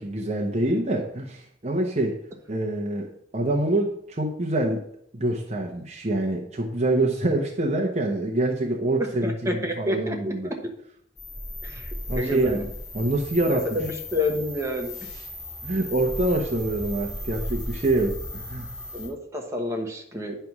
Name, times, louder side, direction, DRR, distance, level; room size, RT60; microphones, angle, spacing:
voice 1, 0.0-2.2 2.5-4.8 5.1-9.3 9.6-10.5 12.1-12.6 12.9-13.8 15.6-18.7, right 2 dB, 35° right, -1 dB, 0.9 m, -26 dB
voice 2, 9.2-10.3 11.6-11.9 12.2-12.7 13.5-15.0 18.9-20.3, left 1 dB, 15° right, 1 dB, 1.1 m, -28 dB
sound 1, 11.2-19.1, left 1 dB, 20° left, 2.9 m, -36 dB
9.4 x 3.4 x 5.9 m, 0.67 s
head